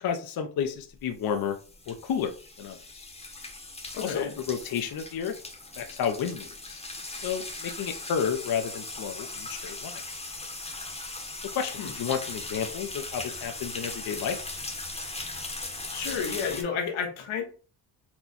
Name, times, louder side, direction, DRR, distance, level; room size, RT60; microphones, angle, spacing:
voice 1, 0.0-1.6 1.9-3.1 4.0-5.4 5.8-6.8 7.2-10.0 11.5-14.4, left 7 dB, 50° left, 0.6 m, -31 dB
sound 1, 0.9-16.6, left 2 dB, 15° left, 0.9 m, -39 dB
voice 2, 3.9-4.3 11.8-11.9 15.9-17.4, left 6 dB, 90° left, 1.2 m, -31 dB
4.4 x 2.2 x 4.1 m
cardioid pair, 100°, 47 cm